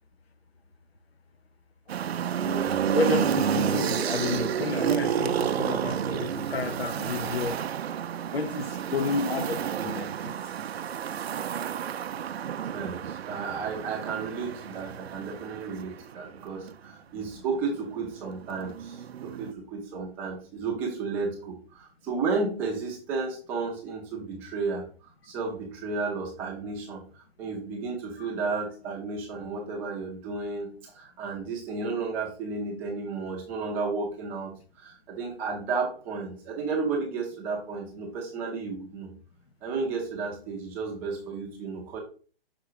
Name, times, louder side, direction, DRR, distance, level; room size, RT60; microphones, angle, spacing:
sound 1, 1.9-16.7 17.8-19.5, right 8 dB, 90° right, 0.5 m, -30 dB
voice 1, 2.4-3.0 12.7-39.1 39.6-42.0, right 4 dB, 5° right, 0.4 m, -33 dB
voice 2, 2.9-7.6 8.3-10.4, left 4 dB, 85° left, 0.9 m, -31 dB
5.8 x 3.8 x 4.8 m
hypercardioid pair, 155°, 30 cm